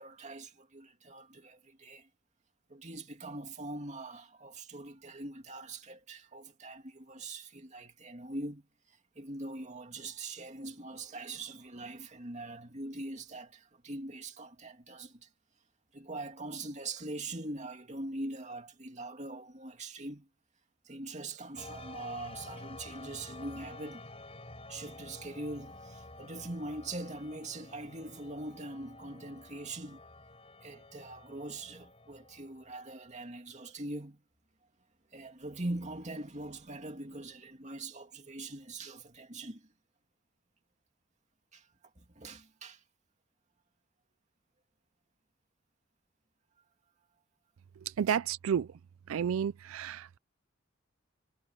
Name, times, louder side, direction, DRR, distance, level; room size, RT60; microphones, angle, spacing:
voice 1, 0.0-2.1 2.7-15.3 15.9-20.3 20.8-24.1 24.7-30.0 30.6-34.2 35.1-39.7 41.5-41.7 42.0-42.8 48.1-48.2, right 2 dB, 35° right, 2.6 m, -42 dB
sound 1, 21.6-32.7, left 2 dB, 30° left, 4.3 m, -50 dB
voice 2, 47.9-48.7 49.1-50.2, right 8 dB, 80° right, 0.4 m, -31 dB
head